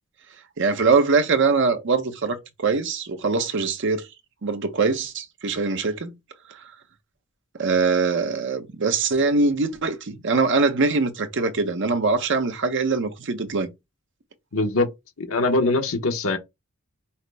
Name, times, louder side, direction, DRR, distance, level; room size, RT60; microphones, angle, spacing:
voice 1, 0.6-4.0 4.4-6.1 7.6-13.7, right 4 dB, 60° right, 0.7 m, -22 dB
voice 2, 14.5-14.9 15.2-16.4, left 2 dB, 70° left, 0.9 m, -22 dB
5.6 x 2.1 x 3.3 m
head